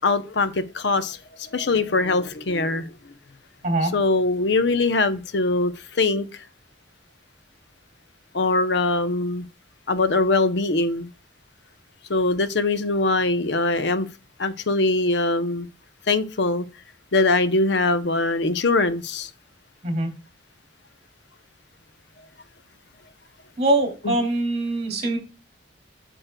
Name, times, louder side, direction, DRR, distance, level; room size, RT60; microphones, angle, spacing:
voice 1, 0.0-2.9 3.9-6.3 8.3-9.5 9.9-11.1 12.1-14.1 14.4-15.7 16.1-16.6 17.1-19.3 24.0-24.2, left 3 dB, 70° left, 0.7 m, -22 dB
voice 2, 23.6-25.2, right 2 dB, 35° right, 2.7 m, -23 dB
8.8 x 6.3 x 2.2 m
head